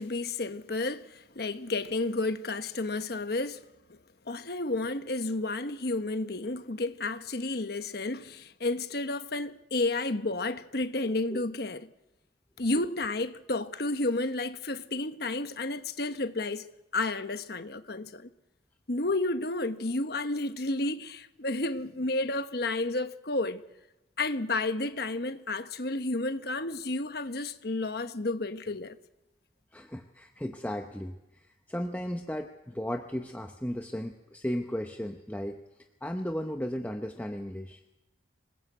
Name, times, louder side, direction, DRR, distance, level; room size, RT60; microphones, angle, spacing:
voice 1, 0.0-3.6 4.3-11.9 12.6-16.7 16.9-18.3 18.9-23.6 24.2-29.0, left 2 dB, 55° left, 1.2 m, -31 dB
voice 2, 29.7-31.2 31.7-35.6 36.0-37.8, equal, 10° left, 0.8 m, -35 dB
26.5 x 19.0 x 8.1 m
head